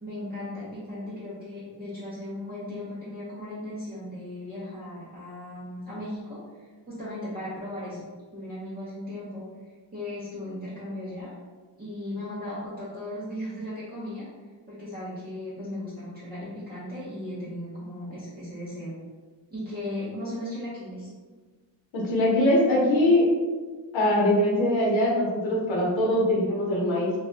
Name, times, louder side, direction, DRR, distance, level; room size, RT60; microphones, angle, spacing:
voice 1, 0.0-8.0 8.3-9.4 9.9-11.3 11.8-14.3 14.7-18.9 19.5-21.1, left 1 dB, 20° right, -10 dB, 0.5 m, -36 dB
voice 2, 21.9-23.3 23.9-27.1, left 1 dB, 85° left, -4 dB, 0.8 m, -22 dB
2.3 x 2.0 x 3.7 m, 1.4 s
wide cardioid pair, 170°, 45 cm